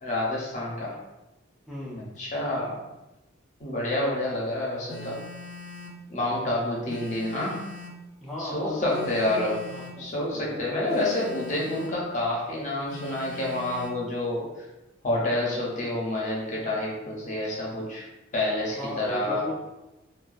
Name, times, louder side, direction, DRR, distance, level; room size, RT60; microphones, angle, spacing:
voice 1, 0.0-1.0 2.2-2.8 3.6-5.2 6.1-7.6 8.4-9.5 10.0-14.5 15.0-18.0 18.3-19.5, left 1 dB, 40° left, -4 dB, 0.6 m, -28 dB
voice 2, 1.7-2.1 8.2-10.7 18.7-19.5, left 1 dB, ahead, -9 dB, 0.3 m, -35 dB
Telephone, 4.9-6.0 6.9-8.0 8.9-10.0 10.9-12.0 12.9-14.0, left 2 dB, 80° left, 0.4 m, -42 dB
2.3 x 2.2 x 2.4 m, 0.99 s
head